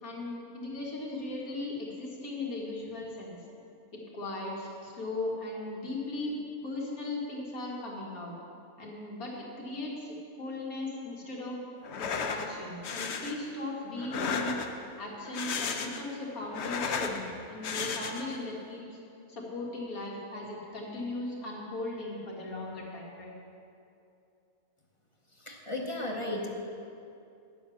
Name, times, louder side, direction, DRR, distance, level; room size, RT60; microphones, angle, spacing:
voice 1, 0.0-3.4 3.9-6.4 6.6-8.3 8.8-11.6 11.9-14.5 15.0-19.0 19.3-23.3, left 2 dB, 90° left, -3 dB, 2.3 m, -38 dB
sound 1, 11.8-12.5 12.8-13.3 14.0-14.9 15.2-16.1 16.4-17.2 17.6-18.4, left 5 dB, 60° left, 0.9 m, -34 dB
voice 2, 25.3-26.5, left 1 dB, 25° left, 0 dB, 0.8 m, -35 dB
9.9 x 7.1 x 7.0 m, 2.6 s
omnidirectional pair, 1.5 m